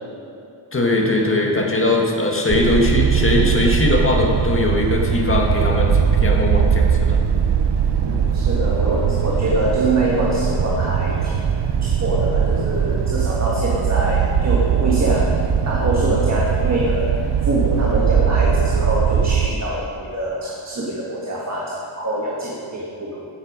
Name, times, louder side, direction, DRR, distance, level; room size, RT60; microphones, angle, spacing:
voice 1, 0.7-7.2, left 2 dB, 25° left, 0 dB, 1.8 m, -20 dB
sound 1, 2.5-19.5, right 7 dB, 55° right, 0.7 m, -20 dB
voice 2, 8.0-11.4 11.8-17.2 17.4-23.3, right 1 dB, 30° right, -4 dB, 1.7 m, -24 dB
15.5 x 8.0 x 5.2 m, 2.5 s
wide cardioid pair, 115°, 50 cm